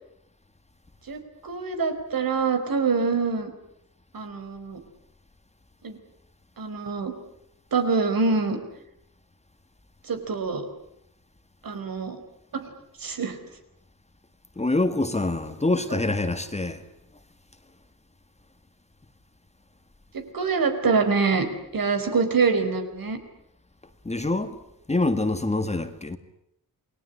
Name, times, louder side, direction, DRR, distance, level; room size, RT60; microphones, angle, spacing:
voice 1, 1.1-3.5 4.1-4.8 5.8-6.0 6.6-7.1 7.7-8.6 10.1-10.6 11.6-12.2 12.5-12.6 13.0-13.4 20.1-21.5 21.7-23.2, right 4 dB, 65° right, 4.5 m, -25 dB
voice 2, 14.6-16.9 24.0-24.6 24.9-26.2, left 2 dB, 20° left, 1.8 m, -25 dB
28.5 x 21.0 x 9.9 m
wide cardioid pair, 145°, 37 cm